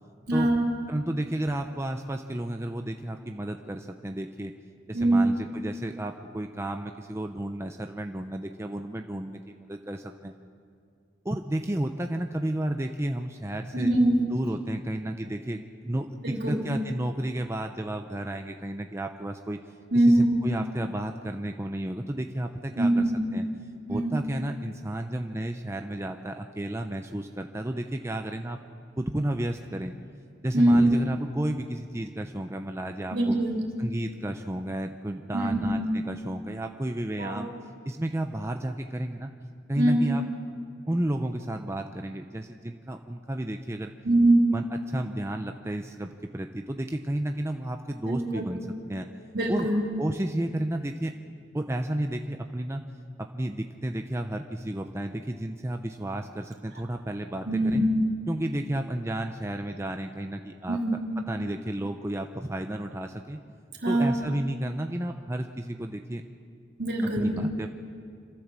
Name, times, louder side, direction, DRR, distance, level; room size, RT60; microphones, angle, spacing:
voice 1, 0.3-0.7 4.9-5.3 13.7-14.2 16.2-16.6 19.9-20.4 22.8-23.3 23.9-24.1 30.5-30.9 33.1-33.7 35.3-35.8 37.2-37.4 39.8-40.0 44.0-44.5 48.1-48.5 49.3-49.8 57.5-57.9 60.7-60.9 63.8-64.1 66.8-67.4, right 1 dB, 65° right, -1 dB, 3.7 m, -22 dB
voice 2, 0.9-4.5 4.9-10.3 11.2-13.9 14.3-19.6 19.9-23.0 23.3-23.5 23.9-28.6 29.0-29.9 30.4-33.3 33.8-37.5 37.8-39.3 39.7-40.3 40.9-43.9 44.5-48.6 48.9-49.1 49.5-49.7 50.0-51.1 51.5-52.8 53.2-57.8 58.3-60.8 61.3-63.4 63.9-66.2 67.2-67.7, right 1 dB, 15° right, 5 dB, 0.7 m, -32 dB
26.0 x 14.0 x 7.5 m, 2.3 s
head